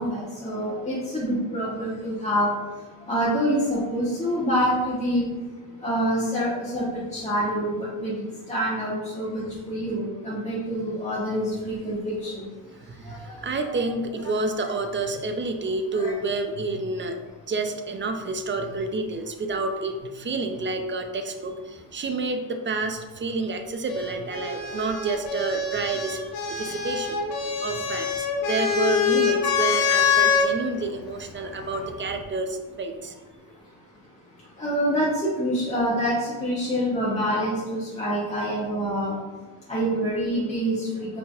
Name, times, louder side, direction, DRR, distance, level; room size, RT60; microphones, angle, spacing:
voice 1, 0.0-2.5 3.1-5.2 5.8-12.5 13.0-13.8 15.9-16.1 34.6-39.2 39.7-41.2, equal, 15° left, -9 dB, 1.1 m, -26 dB
voice 2, 12.9-17.2 17.5-27.2 27.6-33.1, right 3 dB, 30° right, 6 dB, 0.5 m, -29 dB
sound 1, 23.9-30.5 31.6-32.2, left 6 dB, 60° left, 0.8 m, -25 dB
4.8 x 3.4 x 2.4 m, 1.3 s
cardioid pair, 70°, 42 cm